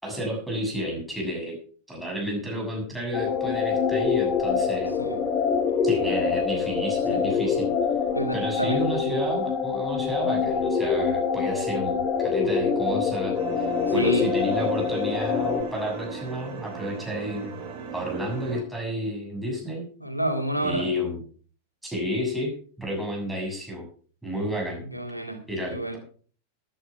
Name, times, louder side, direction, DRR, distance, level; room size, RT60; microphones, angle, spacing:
voice 1, 0.0-1.6 1.9-4.9 5.8-7.7 8.3-17.5 17.9-19.9 20.6-21.2 21.8-22.5 22.8-23.9 24.2-24.8 25.5-26.0, equal, 5° right, 6.9 m, -31 dB
sound 1, 3.1-15.6, left 6 dB, 25° left, 2.2 m, -25 dB
voice 2, 8.1-9.2 10.4-10.5 13.9-14.3 20.0-20.9 24.8-25.4 25.7-25.9, equal, 90° left, 2.3 m, -29 dB
sound 2, 13.3-18.6, right 6 dB, 45° right, 3.8 m, -37 dB
14.0 x 11.0 x 4.7 m
figure-of-eight pair, 90°, 0 cm